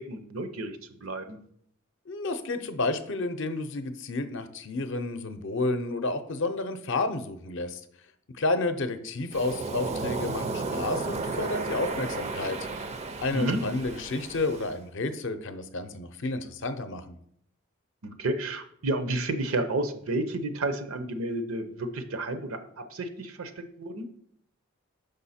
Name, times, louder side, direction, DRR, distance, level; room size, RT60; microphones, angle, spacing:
voice 1, 0.0-1.4 13.3-13.6 18.0-24.1, right 2 dB, 75° right, 9 dB, 0.7 m, -31 dB
voice 2, 2.1-7.8 8.4-12.6 13.2-17.2, left 2 dB, 60° left, 9 dB, 0.6 m, -31 dB
Waves surf, 9.3-14.8, right 3 dB, 30° right, 0.4 m, -33 dB
6.3 x 5.2 x 4.2 m, 0.69 s
head